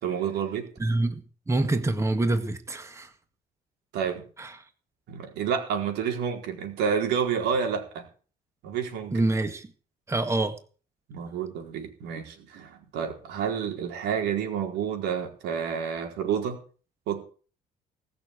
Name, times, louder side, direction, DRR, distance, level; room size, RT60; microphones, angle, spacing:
voice 1, 0.0-0.7 3.9-4.2 5.1-8.1 8.6-9.2 11.1-16.6 17.1-17.2, right 7 dB, 85° right, 3 dB, 4.4 m, -29 dB
voice 2, 0.8-3.1 4.4-4.6 9.1-9.7 10.1-10.6, right 2 dB, 15° right, 8 dB, 1.8 m, -26 dB
19.0 x 6.8 x 8.4 m, 0.39 s
cardioid pair, 110°, 17 cm